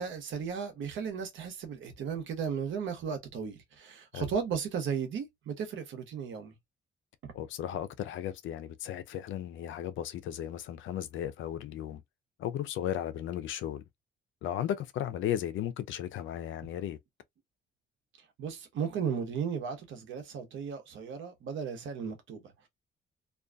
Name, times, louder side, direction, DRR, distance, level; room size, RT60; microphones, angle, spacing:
voice 1, 0.0-6.6 7.2-7.3 18.4-22.7, right 7 dB, 75° right, 0.9 m, -35 dB
voice 2, 7.3-12.0 12.4-13.8 14.4-17.0, left 11 dB, 75° left, 0.5 m, -35 dB
2.5 x 2.2 x 2.2 m
cardioid pair, 90°, 20 cm